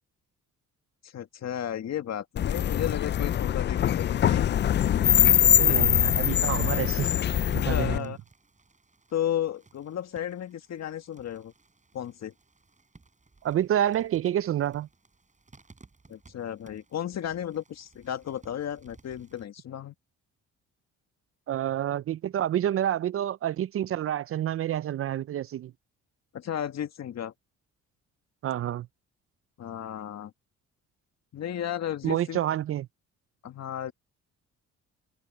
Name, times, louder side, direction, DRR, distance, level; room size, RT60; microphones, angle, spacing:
voice 1, 1.0-4.5 5.7-5.8 7.7-8.2 9.1-11.5 11.9-12.3 16.1-19.9 26.3-27.3 29.6-30.3 31.3-32.4 33.4-33.9, left 10 dB, 60° left, 1.9 m, -34 dB
sound 1, 2.4-8.0, left 10 dB, 35° left, 0.4 m, -23 dB
sound 2, 5.5-19.5, right 3 dB, 25° right, 7.7 m, -59 dB
voice 2, 5.6-7.1 7.5-8.1 13.4-14.9 21.5-25.7 28.4-28.9 32.0-32.9, right 11 dB, 50° right, 0.4 m, -28 dB
cardioid pair, 90°, 30 cm